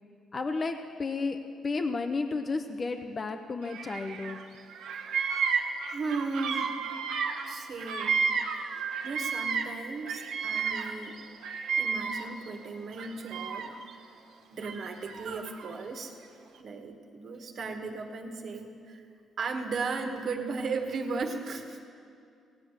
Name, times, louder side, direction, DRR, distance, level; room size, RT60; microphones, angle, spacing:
voice 1, 0.3-1.4 1.6-4.4, left 3 dB, 35° left, 6 dB, 0.7 m, -32 dB
Bird vocalization bird call bird song, 3.7-4.4 4.7-9.8 10.1-12.5 12.9-13.9 14.6-15.7, right 6 dB, 85° right, 1.0 m, -32 dB
voice 2, 5.9-6.7 7.5-8.3 9.0-11.2 11.8-13.7 14.5-16.1 16.6-19.0 19.4-21.8, right 4 dB, 55° right, 4 dB, 1.6 m, -36 dB
17.5 x 8.3 x 6.5 m, 2.4 s
cardioid pair, 90°, 0 cm